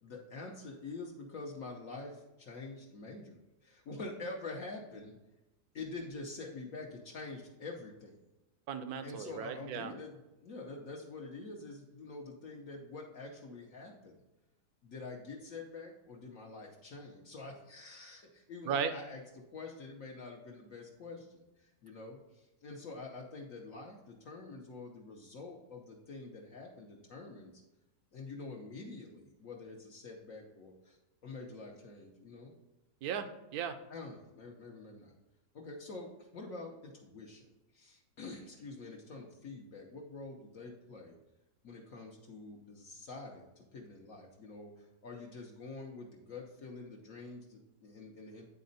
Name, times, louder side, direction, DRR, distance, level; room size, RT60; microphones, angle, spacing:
voice 1, 0.0-5.2 5.7-8.2 9.0-14.2 14.8-27.6 28.1-31.0 31.2-32.5 33.9-35.1 35.5-41.2 41.6-48.5, left 3 dB, 60° left, -1 dB, 1.2 m, -46 dB
voice 2, 8.7-9.9 18.7-18.9 33.0-33.8, right 7 dB, 70° right, 10 dB, 1.1 m, -36 dB
9.4 x 4.1 x 4.0 m, 1.0 s
omnidirectional pair, 1.7 m